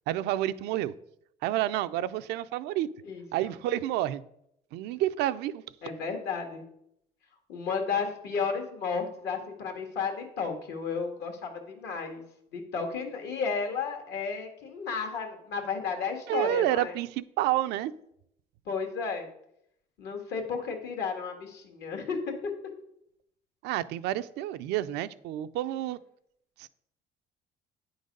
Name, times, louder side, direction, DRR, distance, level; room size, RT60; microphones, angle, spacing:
voice 1, 0.1-0.9 1.4-2.9 3.3-4.2 4.7-5.6 16.3-17.9 23.6-26.0 26.6-26.7, right 13 dB, 90° right, 13 dB, 0.4 m, -29 dB
voice 2, 3.1-3.5 5.8-6.6 7.5-12.2 12.5-16.9 18.6-19.2 20.0-22.5, left 5 dB, 75° left, 4 dB, 1.7 m, -33 dB
9.4 x 3.9 x 5.2 m, 0.75 s
cardioid pair, 110°, 17 cm